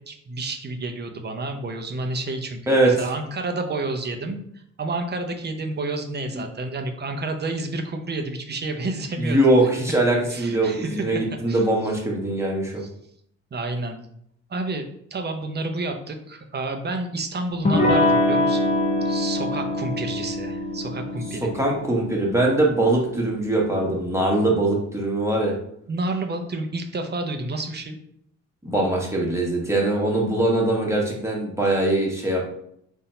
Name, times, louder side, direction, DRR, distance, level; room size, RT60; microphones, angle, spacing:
voice 1, 0.1-9.4 10.3-11.2 11.5-11.6 12.8-12.9 13.5-14.0 14.5-18.8 19.0-21.5 25.9-28.0, right 2 dB, 35° right, 5 dB, 0.8 m, -30 dB
voice 2, 9.2-12.8 21.4-25.5 28.6-32.4, right 2 dB, 10° right, -2 dB, 1.4 m, -22 dB
Electric guitar / Strum, 17.6-23.0, left 1 dB, 25° left, 1.0 m, -24 dB
4.0 x 2.7 x 4.3 m, 0.70 s
cardioid pair, 90°, 30 cm